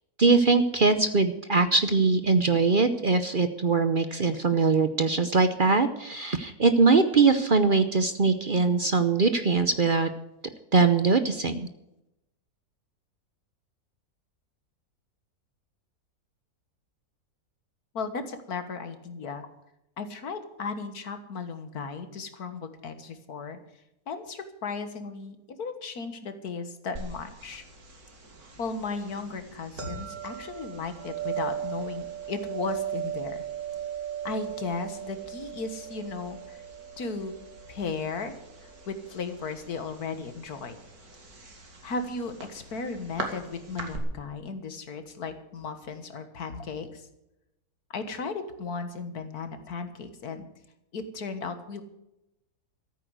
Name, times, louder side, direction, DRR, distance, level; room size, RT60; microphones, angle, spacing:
voice 1, 0.2-10.1 10.7-11.7, right 4 dB, 45° right, 10 dB, 0.8 m, -22 dB
voice 2, 17.9-19.5 20.0-23.6 24.1-27.6 28.6-33.4 34.2-36.6 37.0-37.4 37.7-38.3 38.6-40.8 41.8-47.1 47.9-50.5 50.9-51.8, left 4 dB, 80° left, 9 dB, 2.0 m, -35 dB
sound 1, 27.0-44.0, right 7 dB, 80° right, 2.9 m, -39 dB
14.0 x 8.9 x 8.1 m, 0.88 s
omnidirectional pair, 1.6 m